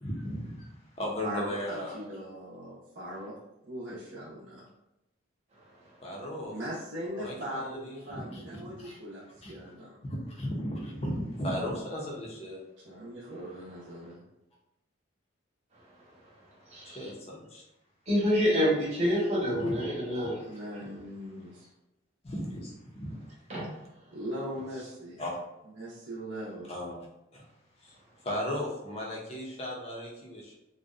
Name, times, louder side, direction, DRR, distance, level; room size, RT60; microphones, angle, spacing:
voice 1, 0.0-2.0 6.0-6.5 7.2-9.0 9.4-9.5 10.0-12.6 16.8-17.6 19.5-19.6 20.2-20.3 22.2-23.2 25.2-25.4 26.7-26.9 27.3-27.5 27.8-28.0 28.2-30.6, equal, 30° left, -2 dB, 0.5 m, -36 dB
voice 2, 1.2-3.4 3.6-4.7 6.5-10.0 12.8-14.2 18.8-19.1 20.5-21.7 24.1-25.2 25.8-26.7, equal, 70° right, -8 dB, 0.6 m, -40 dB
voice 3, 16.7-17.1 18.1-20.4 23.5-23.7, equal, 35° right, -6 dB, 0.9 m, -27 dB
2.6 x 2.1 x 2.4 m, 0.89 s
head